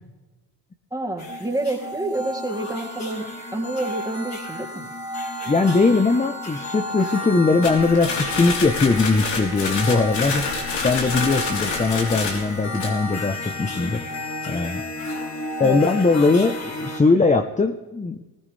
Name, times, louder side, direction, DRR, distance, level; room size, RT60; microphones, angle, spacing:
voice 1, 0.9-3.3 3.5-4.8 15.6-15.8, right 2 dB, 10° right, -1 dB, 2.9 m, -28 dB
sound 1, 1.2-17.0, left 1 dB, 40° left, 4.1 m, -32 dB
voice 2, 5.5-10.5 10.8-14.0 14.5-14.8 15.6-18.2, left 3 dB, 20° left, 7 dB, 0.9 m, -20 dB
sound 2, 7.6-12.9, left 4 dB, 85° left, 3.6 m, -28 dB
19.5 x 15.5 x 3.4 m, 1.1 s
cardioid pair, 90°, 41 cm